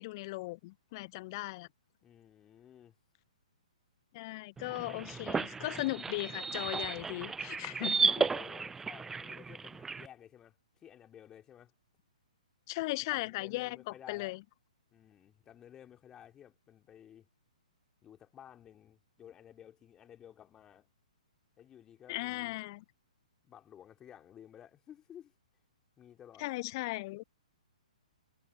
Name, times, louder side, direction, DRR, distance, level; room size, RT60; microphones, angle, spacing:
voice 1, 0.0-1.7 4.1-8.3 12.7-14.4 22.1-22.8 26.4-27.2, left 21 dB, 35° left, 0.8 m, -37 dB
voice 2, 2.0-2.9 8.0-11.7 13.1-14.3 14.9-17.3 18.0-20.9 21.6-22.5 23.4-25.3 26.0-26.5, left 10 dB, 15° left, 3.3 m, -54 dB
sound 1, 4.6-10.1, right 5 dB, 10° right, 0.5 m, -34 dB
figure-of-eight pair, 120°, 4 cm